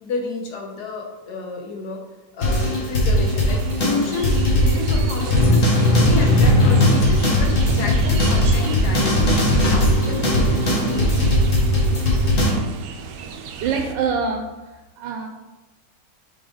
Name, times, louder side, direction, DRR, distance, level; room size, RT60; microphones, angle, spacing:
voice 1, 0.0-2.0 2.3-9.3 9.7-11.3, left 3 dB, 70° left, 2 dB, 1.5 m, -30 dB
sound 1, 2.4-12.5, left 1 dB, 50° left, 1.6 m, -18 dB
sound 2, 3.2-13.9, right 4 dB, 70° right, 0.9 m, -29 dB
voice 2, 13.6-15.3, right 5 dB, 85° right, 2 dB, 1.3 m, -26 dB
6.2 x 4.2 x 3.8 m, 1.1 s
omnidirectional pair, 1.9 m